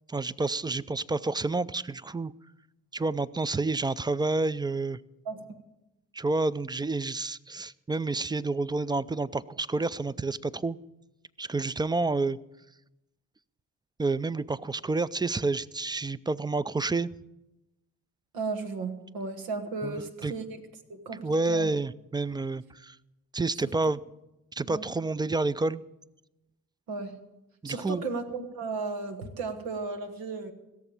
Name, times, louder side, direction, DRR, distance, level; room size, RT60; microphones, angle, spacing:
voice 1, 0.1-2.3 2.9-5.0 6.1-10.8 11.4-12.4 14.0-17.1 19.8-20.3 21.2-23.0 23.3-24.0 24.5-25.8 27.6-28.0, right 3 dB, 10° right, 18 dB, 0.5 m, -29 dB
voice 2, 5.2-5.6 18.3-20.6 20.9-21.7 24.7-24.8 26.9-27.2 27.6-30.5, right 3 dB, 80° right, 6 dB, 1.6 m, -35 dB
16.5 x 7.0 x 8.7 m, 0.95 s
supercardioid pair, 55°, 35 cm